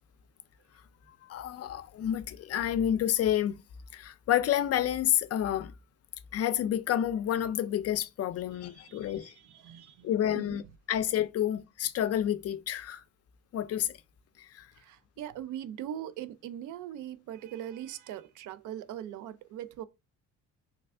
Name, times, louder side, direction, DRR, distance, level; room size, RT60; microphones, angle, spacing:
voice 1, 1.2-3.6 3.9-5.7 6.3-9.3 10.0-10.6 10.9-13.0 13.5-14.0 14.4-14.7, left 11 dB, 55° left, 0.4 m, -29 dB
voice 2, 8.8-10.6 14.8-19.8, right 11 dB, 85° right, 0.4 m, -41 dB
3.2 x 2.4 x 3.3 m
cardioid pair, 90°, 30 cm